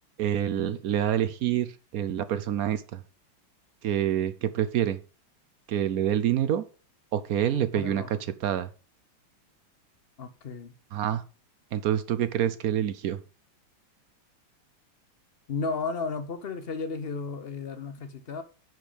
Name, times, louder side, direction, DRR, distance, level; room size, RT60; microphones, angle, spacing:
voice 1, 0.2-3.0 3.8-5.0 5.7-6.6 7.1-8.7 10.9-11.2 11.7-13.2, right 10 dB, 75° right, 0.8 m, -27 dB
voice 2, 7.5-8.2 10.2-10.7 15.5-18.4, left 4 dB, 55° left, 0.6 m, -34 dB
10.0 x 6.4 x 5.1 m
omnidirectional pair, 2.3 m